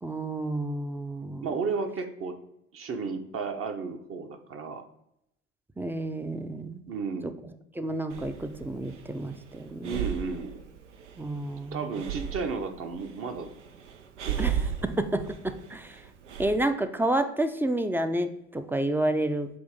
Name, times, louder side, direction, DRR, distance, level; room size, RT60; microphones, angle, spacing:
voice 1, 0.0-1.5 5.8-6.8 7.2-7.3 7.7-10.0 11.2-12.0 14.4-16.0 16.4-19.5, right 1 dB, 5° right, 9 dB, 0.5 m, -30 dB
voice 2, 1.4-2.4 2.7-4.8 6.9-7.4 9.8-10.6 11.7-13.5 14.2-14.5, right 4 dB, 40° right, 6 dB, 0.9 m, -33 dB
Breathing, 8.1-16.6, right 8 dB, 80° right, 0.6 m, -36 dB
7.9 x 2.7 x 5.1 m, 0.79 s
figure-of-eight pair, 55°, 35 cm